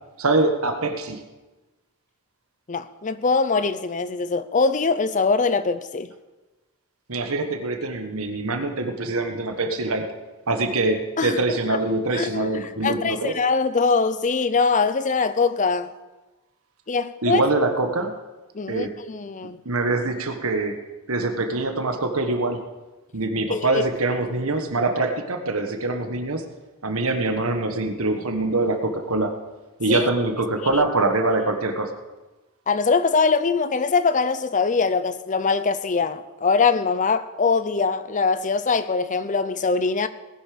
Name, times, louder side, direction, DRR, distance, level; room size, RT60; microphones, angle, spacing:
voice 1, 0.2-1.2 7.1-10.1 10.5-13.3 17.2-18.1 18.7-18.9 19.6-20.8 21.1-22.6 23.1-26.5 26.8-29.3 29.8-31.9, right 2 dB, 70° right, 1.4 m, -24 dB
voice 2, 2.7-6.1 11.2-11.4 11.7-11.8 12.1-15.9 16.9-17.4 18.5-19.6 23.5-23.8 29.9-30.1 30.7-30.8 32.7-40.1, left 4 dB, 35° left, 0.6 m, -22 dB
19.0 x 11.0 x 5.2 m
head